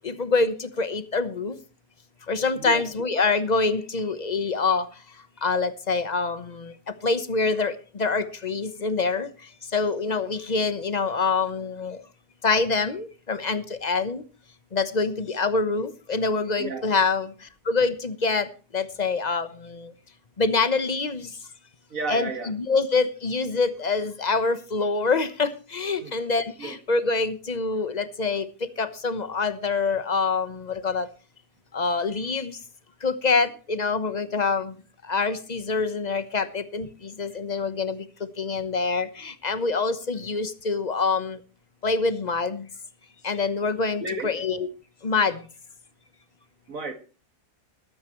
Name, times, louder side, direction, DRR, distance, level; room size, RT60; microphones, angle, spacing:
voice 1, 0.0-1.6 2.3-4.9 5.4-12.0 12.4-14.2 14.7-19.9 20.4-21.3 22.1-31.1 31.7-32.6 33.0-34.8 35.0-38.1 38.4-41.4 41.8-42.7 43.2-44.7 45.0-45.5, left 4 dB, 30° left, 1.0 m, -26 dB
voice 2, 21.9-22.5 26.0-26.1 26.6-26.8 44.0-44.3 46.7-46.9, right 2 dB, 50° right, 2.3 m, -32 dB
21.5 x 9.5 x 3.1 m
omnidirectional pair, 1.8 m